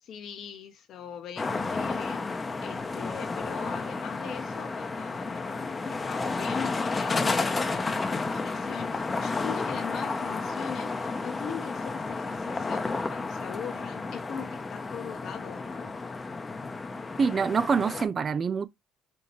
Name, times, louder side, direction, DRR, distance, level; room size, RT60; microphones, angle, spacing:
voice 1, 0.0-2.2 2.6-15.9, left 8 dB, 60° left, 0.8 m, -41 dB
sound 1, 1.4-18.1, left 3 dB, 25° left, 0.7 m, -32 dB
voice 2, 17.2-18.7, right 5 dB, 40° right, 0.5 m, -25 dB
5.4 x 2.8 x 3.0 m
hypercardioid pair, 65°, 0 cm